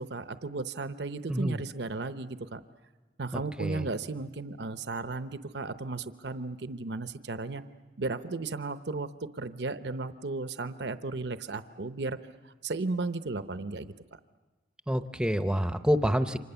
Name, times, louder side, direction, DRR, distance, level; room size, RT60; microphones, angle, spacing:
voice 1, 0.0-2.6 3.2-7.6 8.0-9.1 9.3-12.2 12.6-13.9, right 3 dB, 70° right, 11 dB, 0.8 m, -35 dB
voice 2, 1.3-1.6 3.3-3.9 14.9-16.4, equal, 5° right, 9 dB, 0.7 m, -28 dB
29.0 x 25.5 x 7.0 m, 1.3 s
head